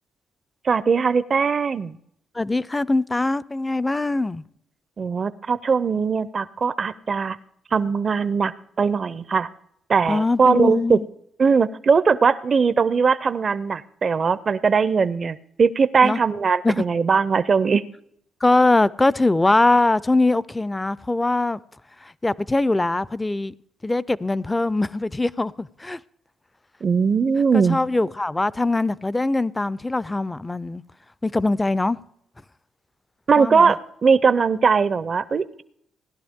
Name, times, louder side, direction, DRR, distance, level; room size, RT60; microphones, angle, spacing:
voice 1, 0.6-2.0 5.0-7.4 7.7-9.5 9.9-11.0 11.4-17.8 26.8-27.8 33.3-35.6, right 5 dB, 50° right, 0.5 m, -20 dB
voice 2, 2.3-4.4 10.1-11.1 16.0-16.2 16.6-16.9 18.4-21.6 22.0-23.5 23.8-26.0 27.5-30.8 31.2-32.0 33.4-33.7, left 2 dB, 20° left, 0.4 m, -22 dB
17.5 x 11.0 x 3.6 m
supercardioid pair, 60°, 0 cm